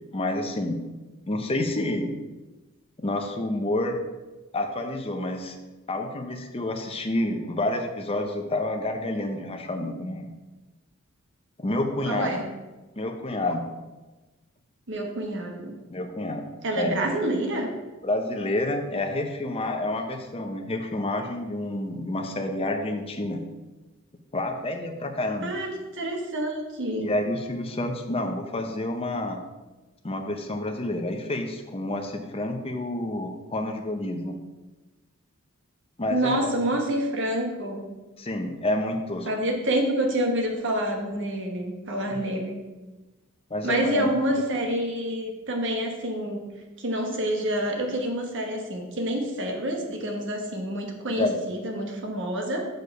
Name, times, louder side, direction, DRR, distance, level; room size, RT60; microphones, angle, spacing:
voice 1, 0.1-0.8 1.3-2.1 3.0-4.0 4.5-5.6 5.9-10.3 11.6-12.4 13.0-13.6 15.9-16.5 16.7-17.1 18.0-23.4 24.3-25.5 27.0-29.4 30.0-34.4 36.0-36.7 38.2-39.3 42.1-42.2 43.5-44.2 51.2-51.4, left 1 dB, 25° left, 4 dB, 0.7 m, -29 dB
voice 2, 12.0-12.4 14.9-15.8 16.6-17.7 25.4-27.1 36.1-37.9 39.2-42.6 43.6-52.8, right 1 dB, 60° right, 2 dB, 1.2 m, -28 dB
6.5 x 4.8 x 5.3 m, 1.2 s
head